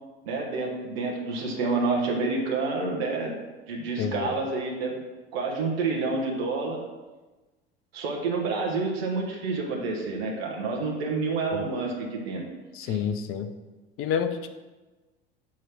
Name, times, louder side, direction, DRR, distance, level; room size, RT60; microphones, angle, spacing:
voice 1, 0.2-3.3 3.7-5.0 5.3-6.8 7.9-12.4 12.8-13.0, right 3 dB, 70° right, -2 dB, 1.3 m, -28 dB
voice 2, 4.0-4.4 11.5-11.7 12.7-13.5 14.0-14.5, left 7 dB, 45° left, 9 dB, 0.7 m, -29 dB
7.3 x 3.1 x 6.0 m, 1.2 s
hypercardioid pair, 70°, 31 cm